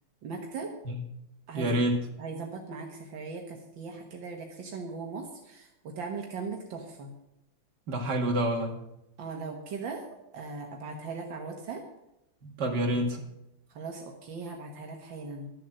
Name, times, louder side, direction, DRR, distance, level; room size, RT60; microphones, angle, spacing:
voice 1, 0.2-0.8 1.5-1.7 2.2-7.1 9.2-10.0 10.3-11.8 13.7-15.5, right 4 dB, 80° right, 2 dB, 2.1 m, -39 dB
voice 2, 1.5-2.0 7.9-8.7 12.4-13.2, right 1 dB, 60° right, 2 dB, 2.5 m, -27 dB
12.5 x 7.6 x 7.6 m, 0.85 s
omnidirectional pair, 2.0 m